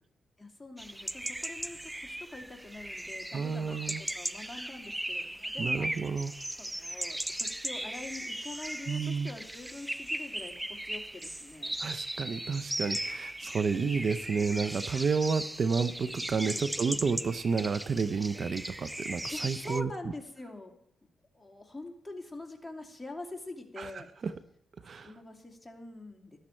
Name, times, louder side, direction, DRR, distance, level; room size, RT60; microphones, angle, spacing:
voice 1, 0.4-6.1 6.6-10.5 10.8-11.8 13.4-13.5 16.5-16.7 19.3-20.8 21.3-24.1 24.9-26.4, left 2 dB, 10° left, 2 dB, 2.5 m, -45 dB
sound 1, 0.8-19.8, right 1 dB, 10° right, 0.4 m, -38 dB
voice 2, 3.3-4.0 5.6-6.3 8.9-9.3 11.8-19.9 23.8-24.3 24.8-25.1, right 5 dB, 55° right, 12 dB, 0.7 m, -31 dB
12.5 x 11.5 x 4.5 m, 0.75 s
supercardioid pair, 60°, 0 cm